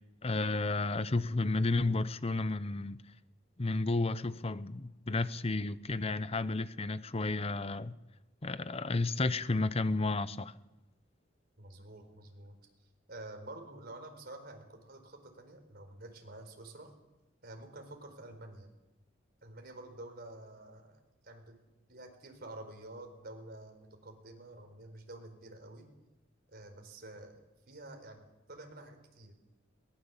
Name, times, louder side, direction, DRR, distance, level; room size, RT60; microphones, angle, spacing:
voice 1, 0.2-3.0 3.6-7.9 8.4-10.5, left 2 dB, 30° left, 0.8 m, -32 dB
voice 2, 11.6-12.6 13.1-16.9 17.4-18.7 19.4-21.6 21.9-25.9 26.5-29.3, right 1 dB, 55° right, 4.5 m, -49 dB
22.0 x 19.5 x 7.3 m
head